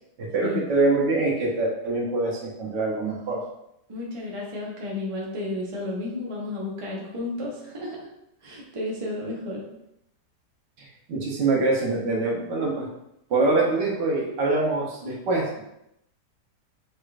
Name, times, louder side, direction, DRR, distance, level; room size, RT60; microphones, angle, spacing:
voice 1, 0.2-3.4 10.8-12.9 13.3-15.6, right 3 dB, 80° right, -2 dB, 1.6 m, -24 dB
voice 2, 3.9-8.1 8.4-9.7, left 2 dB, 25° right, -3 dB, 0.7 m, -32 dB
6.3 x 3.2 x 2.4 m, 0.83 s
omnidirectional pair, 1.8 m